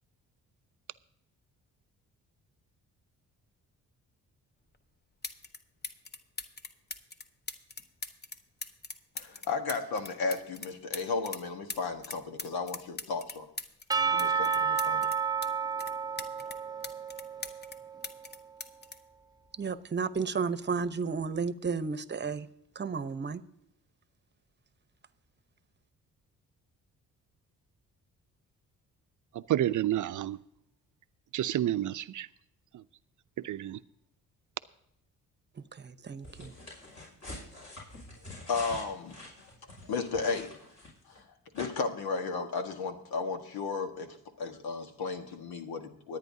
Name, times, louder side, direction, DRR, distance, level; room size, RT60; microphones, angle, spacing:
sound 1, 4.7-4.8 5.2-5.6 5.8-11.4 11.7-15.5 15.8-17.8 18.0-19.9 20.8-21.0, left 3 dB, 25° left, 1.1 m, -41 dB
voice 1, 9.1-13.5 14.1-15.1 38.5-39.5 39.8-40.6 41.1-46.2, left 4 dB, 80° left, 1.5 m, -34 dB
Percussion / Church bell, 13.9-18.2, right 6 dB, 10° right, 0.5 m, -31 dB
voice 2, 19.6-22.5 22.7-23.4 35.7-36.5, right 5 dB, 30° right, 0.9 m, -33 dB
voice 3, 29.5-30.4 31.3-32.3 33.4-33.8, right 12 dB, 55° right, 0.6 m, -29 dB
sound 2, 36.2-41.2 41.5-41.7, left 2 dB, 50° left, 5.8 m, -45 dB
24.5 x 9.1 x 2.8 m
supercardioid pair, 65°, 36 cm